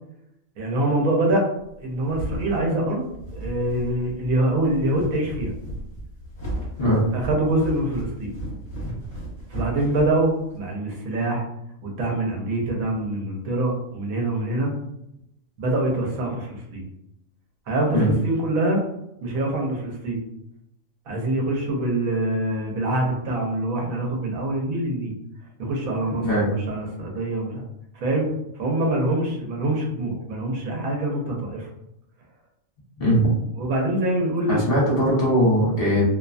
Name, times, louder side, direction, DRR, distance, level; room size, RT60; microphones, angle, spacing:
voice 1, 0.6-1.4 1.8-3.1 3.3-5.5 7.1-8.3 9.5-11.4 11.8-14.7 15.6-16.9 17.7-18.8 19.2-20.2 21.1-25.1 25.6-26.3 26.7-27.6 27.9-28.3 28.6-31.7 33.6-34.6, right 1 dB, 85° right, 0 dB, 1.2 m, -24 dB
sound 1, 1.7-10.6, right 1 dB, 25° left, 1.3 m, -35 dB
voice 2, 33.0-33.3 34.5-36.0, equal, 45° left, -6 dB, 1.1 m, -20 dB
2.7 x 2.2 x 2.4 m, 0.82 s
omnidirectional pair, 1.4 m